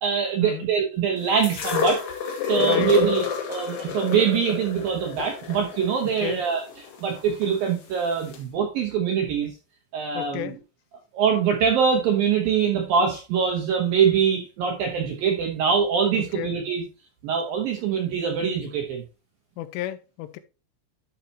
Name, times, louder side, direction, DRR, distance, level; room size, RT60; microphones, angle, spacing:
voice 1, 0.0-2.0 2.4-6.6 7.0-9.5 9.9-10.5 11.1-16.8 17.2-19.0, right 7 dB, 70° right, 2.2 m, -23 dB
sound 1, 1.4-7.5 8.3-8.4, left 6 dB, 60° left, 3.8 m, -28 dB
voice 2, 2.6-2.9 6.2-6.4 10.1-10.6 16.2-16.6 19.6-20.4, left 13 dB, 90° left, 3.2 m, -32 dB
12.5 x 5.8 x 2.9 m
omnidirectional pair, 5.7 m